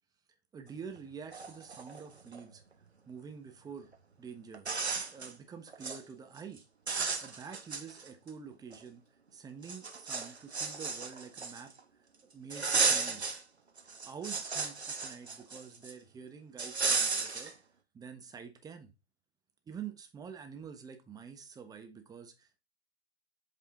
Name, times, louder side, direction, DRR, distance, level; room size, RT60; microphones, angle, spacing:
voice 1, 0.5-2.6 3.1-3.9 4.2-4.7 5.1-6.6 7.2-9.0 9.3-11.7 12.3-13.3 14.0-17.5 17.9-18.9 19.7-22.6, right 6 dB, 10° right, 1.1 m, -47 dB
sound 1, 1.0-1.1 1.3-2.4 3.9-4.0 4.5-5.3 5.7-6.0 6.4-6.6 6.9-8.3 8.7-8.8 9.6-11.8 12.5-13.4 13.8-15.9 16.6-17.5, right 4 dB, 90° right, 1.3 m, -34 dB
8.0 x 4.9 x 3.6 m
figure-of-eight pair, 120°, 32 cm